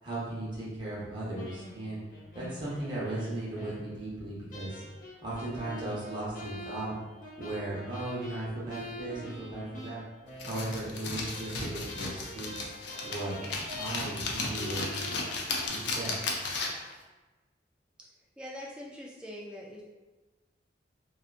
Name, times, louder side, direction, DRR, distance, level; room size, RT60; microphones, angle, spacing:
voice 1, 0.0-2.0 2.3-4.8 5.2-7.0 7.4-10.0 10.4-12.5 13.0-13.4 13.8-14.9 15.7-16.1, right 2 dB, 25° right, -8 dB, 0.7 m, -36 dB
sound 1, 1.4-4.0 4.5-11.0 11.3-14.3 14.6-15.7, equal, 45° left, 0.8 m, -45 dB
sound 2, 10.4-16.9, left 3 dB, 65° left, 0.4 m, -35 dB
voice 2, 18.4-19.8, left 1 dB, 5° right, -4 dB, 0.3 m, -43 dB
2.7 x 2.3 x 2.4 m, 1.2 s
head